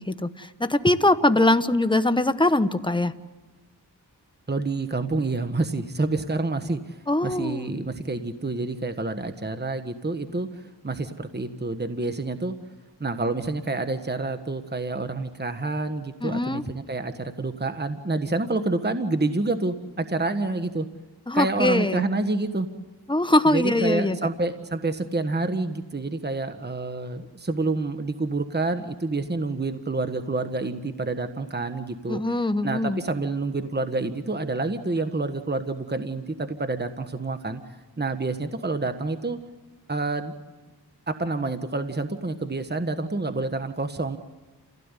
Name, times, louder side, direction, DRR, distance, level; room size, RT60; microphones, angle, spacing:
voice 1, 0.0-3.1 7.1-7.6 16.2-16.6 21.3-22.0 23.1-24.2 32.1-33.0, left 2 dB, 10° left, 10 dB, 1.3 m, -22 dB
voice 2, 4.5-7.0 7.2-10.5 10.8-12.5 13.0-20.9 21.3-22.7 23.5-32.2 32.6-37.6 38.0-39.4 39.9-40.3 41.1-44.2, right 3 dB, 25° right, 7 dB, 1.5 m, -28 dB
28.5 x 16.5 x 9.9 m, 1.2 s
cardioid pair, 55°, 41 cm